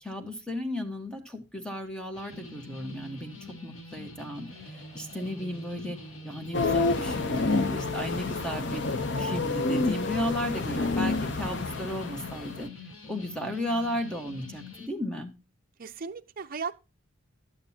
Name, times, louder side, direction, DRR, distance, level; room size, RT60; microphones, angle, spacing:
voice 1, 0.0-6.0 6.2-8.8 9.2-12.7 13.1-15.3, left 1 dB, 5° left, 1.3 m, -34 dB
sound 1, 2.1-14.9, left 1 dB, 75° left, 1.5 m, -45 dB
sound 2, 4.4-11.2, right 1 dB, 30° left, 4.7 m, -56 dB
sound 3, 6.5-12.7, left 3 dB, 60° left, 0.7 m, -28 dB
voice 2, 15.8-16.7, right 5 dB, 45° right, 0.6 m, -37 dB
11.5 x 9.1 x 2.8 m
head